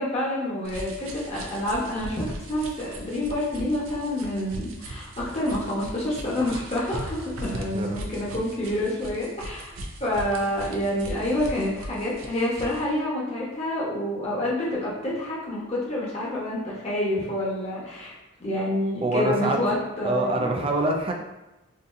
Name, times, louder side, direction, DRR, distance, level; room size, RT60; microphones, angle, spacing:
voice 1, 0.0-18.1 18.4-20.6, left 1 dB, 30° left, -6 dB, 0.9 m, -28 dB
sound 1, 0.6-12.9, right 1 dB, 85° right, 0.5 m, -39 dB
voice 2, 19.0-19.6 20.0-21.1, right 2 dB, 25° right, 2 dB, 0.3 m, -25 dB
3.8 x 2.7 x 2.5 m, 1.0 s
head